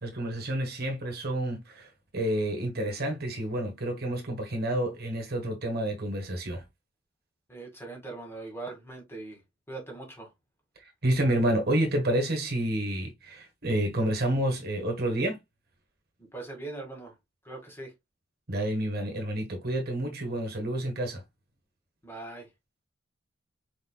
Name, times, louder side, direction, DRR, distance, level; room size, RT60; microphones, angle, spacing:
voice 1, 0.0-6.6 11.0-15.4 18.5-21.2, right 1 dB, 50° right, 1.5 m, -29 dB
voice 2, 7.5-9.4 9.7-10.3 16.2-17.1 17.4-17.9 22.0-22.5, right 3 dB, 10° left, 1.9 m, -41 dB
4.8 x 4.4 x 2.2 m
head